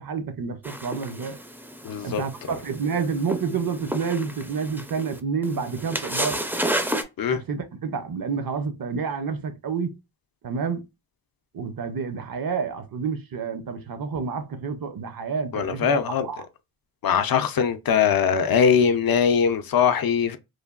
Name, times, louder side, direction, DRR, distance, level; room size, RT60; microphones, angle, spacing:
voice 1, 0.0-1.4 2.0-6.4 7.3-9.9 10.4-10.8 11.5-16.4, right 5 dB, 60° right, 0.6 m, -29 dB
sound 1, 0.6-7.0, right 1 dB, 5° right, 0.4 m, -32 dB
voice 2, 1.8-2.2 7.2-7.4 15.5-16.3 17.0-20.4, left 7 dB, 65° left, 0.5 m, -21 dB
3.2 x 2.2 x 2.3 m
wide cardioid pair, 70°, 39 cm